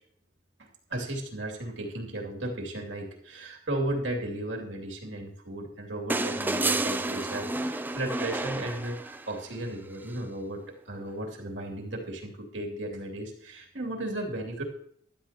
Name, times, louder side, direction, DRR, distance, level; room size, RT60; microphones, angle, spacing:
voice 1, 0.9-14.6, right 1 dB, 65° right, 0 dB, 2.6 m, -35 dB
sound 1, 6.1-9.4 10.9-11.0, right 2 dB, 10° right, 0.4 m, -30 dB
16.0 x 12.0 x 2.9 m, 0.65 s
head